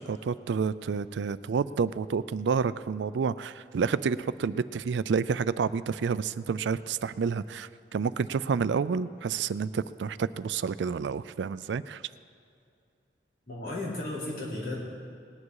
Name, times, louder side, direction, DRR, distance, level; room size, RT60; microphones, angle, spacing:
voice 1, 0.0-12.0, right 5 dB, 85° right, 16 dB, 0.4 m, -29 dB
voice 2, 13.5-14.8, left 2 dB, 50° left, -7 dB, 4.1 m, -34 dB
19.0 x 9.6 x 4.8 m, 2.4 s
head